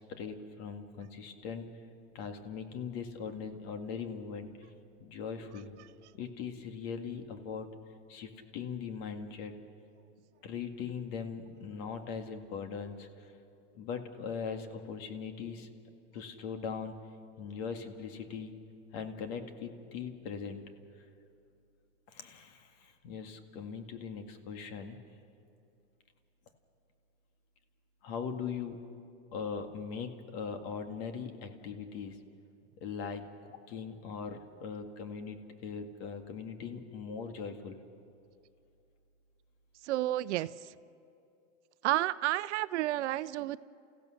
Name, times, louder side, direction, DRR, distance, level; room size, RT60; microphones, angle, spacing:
voice 1, 0.0-1.7 2.1-4.5 5.0-5.7 6.1-7.7 8.1-9.5 10.4-13.3 13.7-15.7 16.1-16.9 17.4-18.5 18.9-20.6 22.1-25.0 28.0-28.8 29.3-32.2 32.8-37.8, left 6 dB, 55° left, 6 dB, 2.0 m, -40 dB
voice 2, 39.8-40.7 41.8-43.6, right 15 dB, 75° right, 16 dB, 0.7 m, -31 dB
29.0 x 16.0 x 6.5 m, 2.6 s
supercardioid pair, 130°, 35 cm